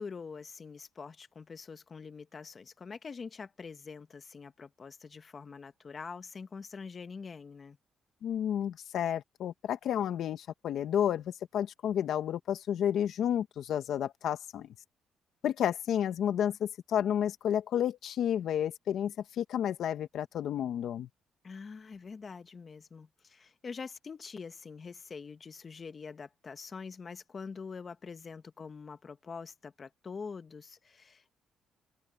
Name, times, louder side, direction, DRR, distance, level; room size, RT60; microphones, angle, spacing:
voice 1, 0.0-7.8 21.4-31.3, left 5 dB, 40° left, 1.5 m, -45 dB
voice 2, 8.2-14.7 15.4-21.1, left 9 dB, 70° left, 1.4 m, -31 dB
open air
cardioid pair, 90°, 0 cm